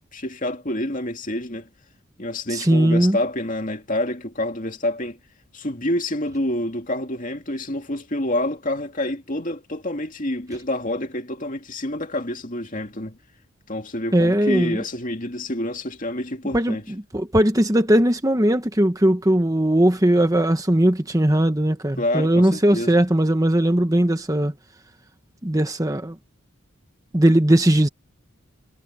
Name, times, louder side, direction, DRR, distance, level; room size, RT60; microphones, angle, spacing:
voice 1, 0.1-1.7 2.2-5.2 5.5-13.2 13.7-16.8 22.0-22.9, left 1 dB, 40° left, 2.5 m, -27 dB
voice 2, 2.5-3.2 14.1-14.8 16.5-16.8 17.1-24.5 25.4-26.2 27.1-27.9, right 1 dB, 15° right, 1.2 m, -19 dB
head